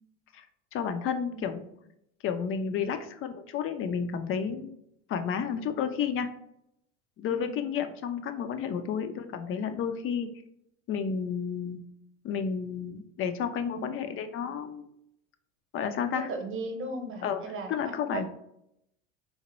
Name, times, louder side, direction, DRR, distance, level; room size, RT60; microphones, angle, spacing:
voice 1, 0.7-1.6 2.2-4.7 5.1-6.3 7.2-10.3 10.9-11.8 12.2-14.8 15.7-16.3 17.2-17.4 17.7-18.2, left 7 dB, 35° left, 9 dB, 0.5 m, -31 dB
voice 2, 7.3-7.6 13.7-14.0 16.1-18.2, right 2 dB, 35° right, 4 dB, 0.9 m, -37 dB
4.0 x 2.1 x 3.0 m, 0.77 s
supercardioid pair, 105°, 37 cm